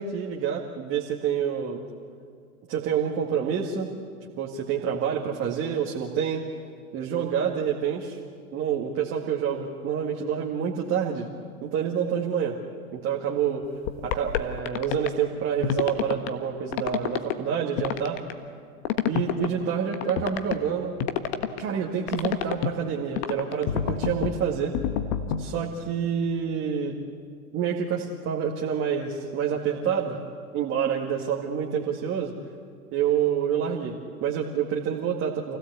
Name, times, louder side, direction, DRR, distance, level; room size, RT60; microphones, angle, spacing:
voice 1, 0.0-1.8 2.7-3.9 4.4-6.4 6.9-8.2 8.5-11.3 11.6-12.6 12.9-13.6 14.0-18.2 19.1-21.0 21.6-24.8 25.4-27.0 27.5-30.2 30.5-32.3 32.9-35.6, right 8 dB, 30° right, -1 dB, 2.1 m, -27 dB
sound 1, 13.9-15.1 15.6-16.3 16.7-17.3 17.8-18.3 18.9-19.5 19.9-20.6 21.0-21.6 22.1-22.7 23.2-25.6, left 9 dB, 40° left, 1.5 m, -27 dB
28.0 x 16.5 x 8.2 m, 2.2 s
figure-of-eight pair, 105°, 44 cm